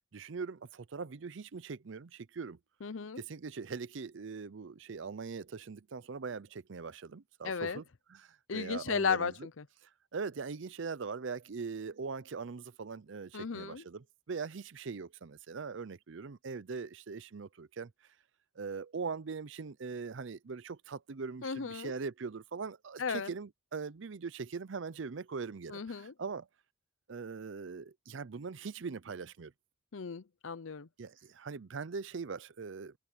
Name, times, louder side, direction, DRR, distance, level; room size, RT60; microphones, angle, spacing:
voice 1, 0.1-2.6 3.2-7.8 8.1-9.3 9.8-17.9 18.6-26.5 27.1-29.5 31.0-32.9, right 5 dB, 65° right, 0.6 m, -41 dB
voice 2, 2.8-3.2 7.4-7.8 8.5-9.6 13.3-13.8 21.4-21.9 23.0-23.3 25.7-26.1 29.9-30.9, left 5 dB, 75° left, 0.7 m, -35 dB
head